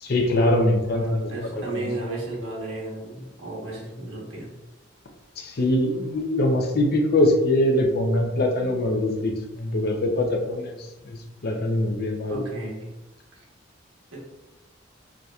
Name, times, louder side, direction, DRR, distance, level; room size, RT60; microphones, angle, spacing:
voice 1, 0.0-1.9 5.4-12.4, left 1 dB, 55° left, 3 dB, 0.6 m, -23 dB
voice 2, 0.9-4.5 12.3-12.9 14.1-14.2, right 2 dB, 85° right, -3 dB, 1.3 m, -34 dB
4.8 x 2.7 x 2.4 m, 1.0 s
head